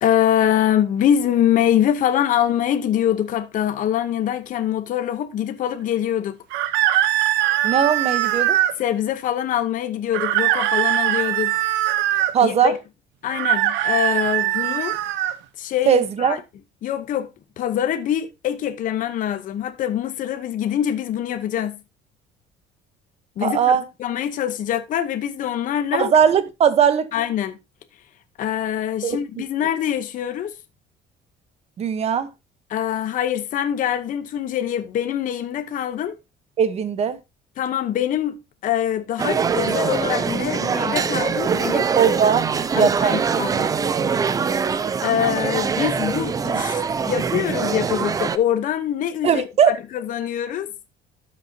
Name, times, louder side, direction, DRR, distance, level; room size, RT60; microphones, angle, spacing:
voice 1, 0.0-6.4 8.8-11.6 12.4-12.8 13.2-15.0 15.6-16.4 16.8-17.3 17.6-21.8 23.4-23.6 24.0-26.1 27.1-27.6 28.4-30.5 32.7-36.2 37.6-41.9 42.7-43.7 45.0-50.7, left 10 dB, 50° left, 0.9 m, -24 dB
sound 1, 6.5-8.7 10.1-12.3 13.3-15.4, right 14 dB, 80° right, 0.9 m, -21 dB
voice 2, 7.6-8.6 12.3-12.7 15.9-16.4 23.4-23.8 25.9-27.1 29.0-29.2 31.8-32.3 36.6-37.2 42.0-42.5 42.7-43.2 49.2-49.7, right 7 dB, 35° right, 1.0 m, -19 dB
sound 2, 39.2-48.4, right 6 dB, 20° right, 0.4 m, -23 dB
12.5 x 6.2 x 2.8 m
cardioid pair, 165°, 18 cm